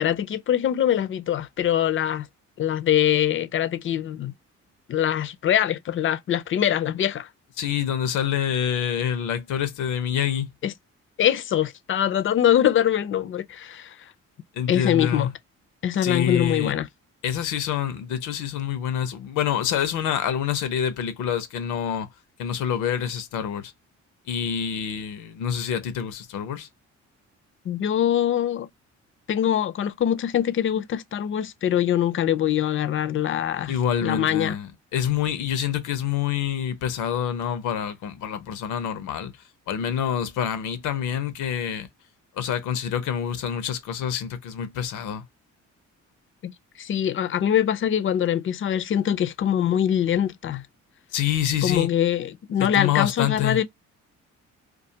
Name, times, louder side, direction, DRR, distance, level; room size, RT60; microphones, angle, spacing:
voice 1, 0.0-2.3 2.6-4.3 4.9-7.3 10.6-10.7 11.2-14.0 14.7-15.3 15.8-16.9 27.7-28.7 29.3-33.7 34.0-34.6 46.4-46.5 46.8-50.6 51.6-53.6, left 10 dB, 45° left, 0.4 m, -23 dB
voice 2, 7.6-10.5 14.6-15.3 16.0-16.7 17.2-22.1 22.4-23.7 24.3-26.7 33.7-39.3 39.7-41.9 42.4-45.2 51.1-51.9 52.6-53.6, left 9 dB, 85° left, 0.7 m, -26 dB
2.4 x 2.3 x 2.7 m
cardioid pair, 90°, 30 cm